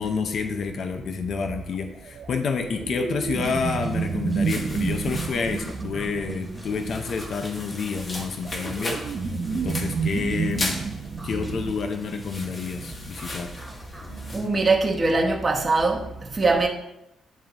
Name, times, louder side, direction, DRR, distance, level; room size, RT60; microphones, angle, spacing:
voice 1, 0.0-9.0 9.5-10.8 11.2-13.5, left 5 dB, 60° left, 0.6 m, -29 dB
sound 1, 1.9-7.0 8.0-11.7, right 6 dB, 45° right, 0.4 m, -30 dB
sound 2, 3.4-14.4, equal, ahead, 1.3 m, -42 dB
sound 3, 3.7-14.5, left 2 dB, 35° left, 1.1 m, -38 dB
voice 2, 14.3-16.0 16.3-16.7, right 3 dB, 30° right, 1.0 m, -21 dB
9.3 x 3.6 x 2.9 m
cardioid pair, 90°, 0 cm